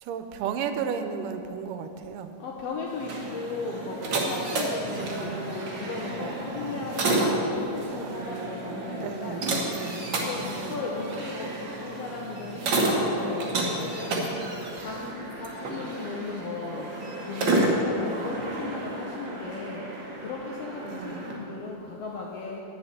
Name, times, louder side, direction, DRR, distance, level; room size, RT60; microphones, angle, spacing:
voice 1, 0.0-2.3 4.9-6.1 7.9-10.0 10.5-10.8 20.8-21.2, right 7 dB, 85° right, 8 dB, 2.2 m, -35 dB
voice 2, 2.4-9.4 10.2-14.3 14.8-15.1 15.4-16.9 17.2-19.8 20.2-22.6, left 3 dB, 75° left, -1 dB, 1.5 m, -36 dB
sound 1, 2.9-21.4, right 2 dB, 55° right, 1.4 m, -30 dB
10.5 x 5.6 x 8.1 m, 2.9 s
omnidirectional pair, 3.7 m